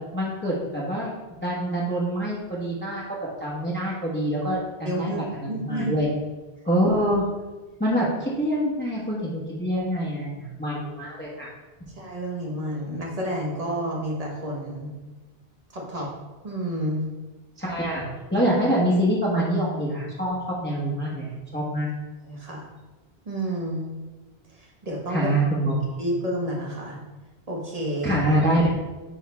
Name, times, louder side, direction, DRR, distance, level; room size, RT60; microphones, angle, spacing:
voice 1, 0.1-1.1 1.4-6.1 6.6-7.3 7.8-11.5 17.6-21.9 25.1-25.8 28.0-28.7, equal, 10° left, -7 dB, 1.3 m, -25 dB
voice 2, 4.8-5.9 11.9-14.9 15.7-16.1 16.4-17.0 22.2-22.6 23.3-23.9 24.5-25.3 26.0-27.0 27.5-28.2, right 1 dB, 35° right, -2 dB, 1.5 m, -30 dB
9.8 x 3.7 x 3.5 m, 1.2 s
omnidirectional pair, 1.1 m